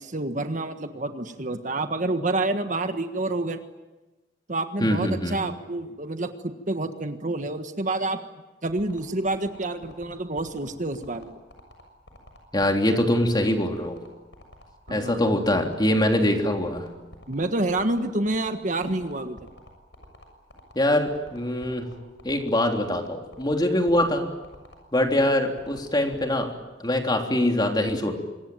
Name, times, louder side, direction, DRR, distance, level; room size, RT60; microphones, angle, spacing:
voice 1, 0.0-3.6 4.5-8.2 8.6-11.4 14.9-15.3 17.3-19.4, right 2 dB, 45° right, 8 dB, 1.6 m, -28 dB
voice 2, 4.8-5.4 12.5-14.0 14.9-16.9 20.8-21.9 22.2-24.3 24.9-26.5 26.8-28.1, left 1 dB, 25° left, 3 dB, 3.3 m, -23 dB
sound 1, 8.7-26.4, left 1 dB, 90° left, 6.8 m, -48 dB
26.0 x 22.0 x 9.2 m, 1.1 s
head